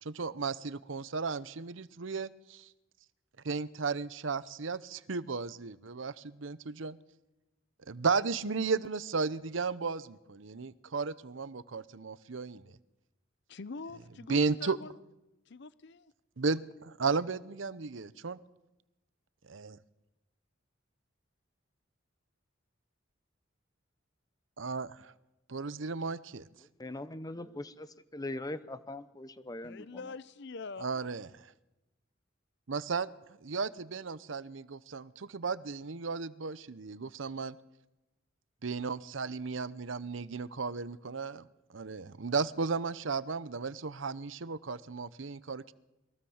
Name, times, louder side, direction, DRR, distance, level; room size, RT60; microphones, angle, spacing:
voice 1, 0.0-2.7 3.4-7.0 7.9-12.7 14.3-14.8 16.4-18.4 19.5-19.7 24.6-25.1 25.5-26.5 30.8-31.3 32.7-33.1 33.4-37.6 38.6-45.7, right 4 dB, 70° right, 0.8 m, -34 dB
voice 2, 13.5-14.9 15.5-16.1 29.6-30.9, left 4 dB, 60° left, 0.7 m, -44 dB
voice 3, 26.6-30.1, left 2 dB, 20° left, 0.8 m, -41 dB
22.5 x 16.0 x 7.2 m
head